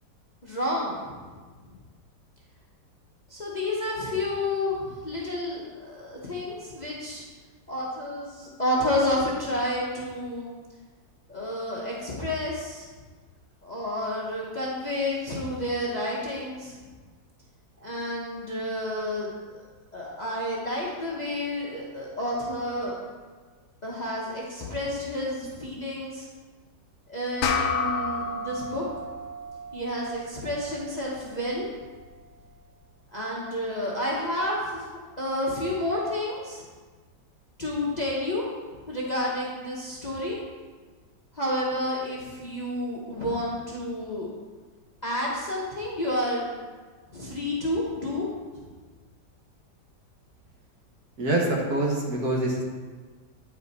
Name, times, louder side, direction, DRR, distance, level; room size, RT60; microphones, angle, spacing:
voice 1, 0.4-1.4 3.3-7.2 7.7-10.5 11.3-12.9 13.6-16.8 17.8-19.6 19.9-23.0 23.8-26.3 27.1-28.8 29.7-31.7 33.1-34.9 35.2-36.6 37.6-38.5 38.9-40.4 41.3-44.3 45.0-46.5 47.1-48.3 48.5-48.6, left 1 dB, 30° left, -5 dB, 0.9 m, -30 dB
sound 1, 27.4-32.2, left 4 dB, 75° left, 1.1 m, -32 dB
voice 2, 51.2-52.6, right 2 dB, 60° right, -2 dB, 1.7 m, -25 dB
9.5 x 4.7 x 4.1 m, 1.4 s
omnidirectional pair, 1.9 m